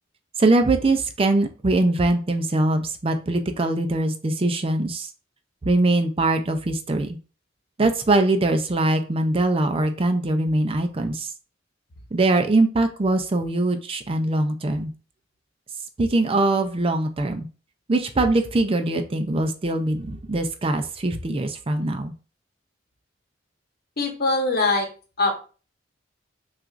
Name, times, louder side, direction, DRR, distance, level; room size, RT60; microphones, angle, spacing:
voice 1, 0.4-5.1 5.6-7.2 7.8-11.3 12.1-14.9 16.0-17.5 17.9-22.1, right 2 dB, 30° right, 6 dB, 0.5 m, -22 dB
voice 2, 24.0-24.9 25.2-25.4, left 2 dB, 55° left, 3 dB, 1.0 m, -22 dB
6.0 x 2.4 x 2.5 m, 0.36 s
head